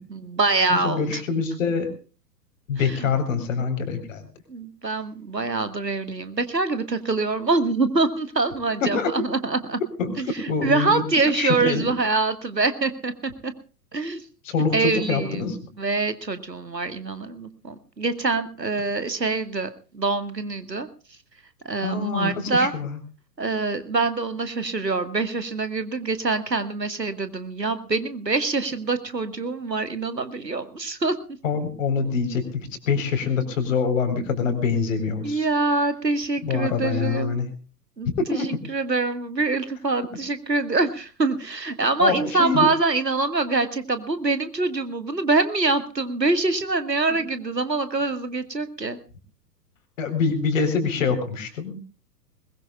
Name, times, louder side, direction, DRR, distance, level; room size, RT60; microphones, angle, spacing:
voice 1, 0.1-1.2 2.8-3.1 4.5-9.8 10.2-13.1 13.4-13.5 13.9-14.2 14.7-15.5 15.8-20.9 21.7-22.7 23.4-31.2 35.2-37.3 38.0-49.0, right 3 dB, 85° right, 11 dB, 1.8 m, -25 dB
voice 2, 0.7-1.9 2.7-4.2 8.8-9.1 10.0-11.0 11.3-11.9 14.4-15.6 21.8-23.0 31.4-35.5 36.4-37.5 38.2-38.6 42.0-42.7 50.0-51.8, left 5 dB, 50° left, 8 dB, 4.1 m, -25 dB
21.0 x 20.5 x 2.3 m, 0.36 s
figure-of-eight pair, 110°, 49 cm